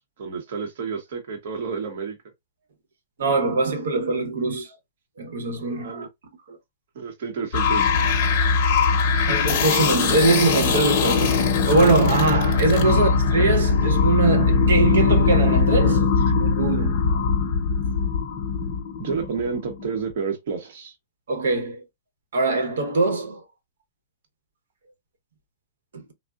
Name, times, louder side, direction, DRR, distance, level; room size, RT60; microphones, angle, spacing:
voice 1, 0.0-2.2 5.8-6.1 6.9-8.0 12.8-13.0 19.0-20.9, right 5 dB, 50° right, 0.7 m, -30 dB
voice 2, 3.2-4.8 5.2-6.1 6.5-6.6 9.1-17.3 21.3-21.8 22.3-23.4 25.9-26.0, right 3 dB, 85° right, 1.0 m, -23 dB
sound 1, 7.5-19.8, left 5 dB, 35° left, 0.7 m, -21 dB
3.5 x 2.0 x 2.3 m
hypercardioid pair, 170°, 0 cm